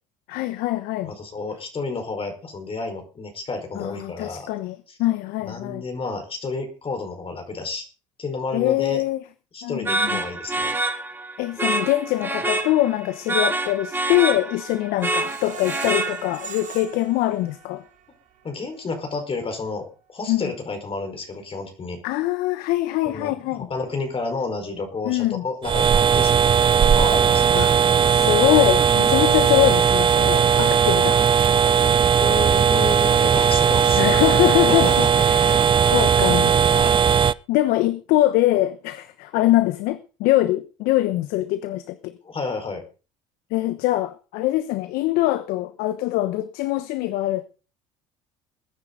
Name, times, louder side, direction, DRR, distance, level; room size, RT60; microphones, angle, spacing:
voice 1, 0.3-1.1 3.7-5.8 8.5-9.2 9.6-10.2 11.4-17.8 20.3-20.4 22.0-23.7 25.0-25.4 27.5-27.7 28.0-31.2 34.0-36.6 37.5-42.2 43.5-47.4, left 16 dB, 70° left, 1.1 m, -23 dB
voice 2, 1.0-4.5 4.9-5.0 5.5-7.9 8.2-9.0 9.5-10.7 18.4-22.0 23.0-23.3 23.7-27.6 32.2-34.0 34.7-35.1 35.4-35.6 36.7-37.0 42.2-42.8, left 3 dB, 35° left, 5.0 m, -31 dB
sound 1, 9.8-16.6, right 2 dB, 15° right, 3.2 m, -27 dB
Screech, 15.0-18.0 18.4-18.5 18.9-19.0, right 8 dB, 55° right, 4.0 m, -38 dB
sound 2, 25.6-37.3, right 7 dB, 30° right, 0.6 m, -18 dB
21.0 x 10.0 x 4.0 m
hypercardioid pair, 65°, 16 cm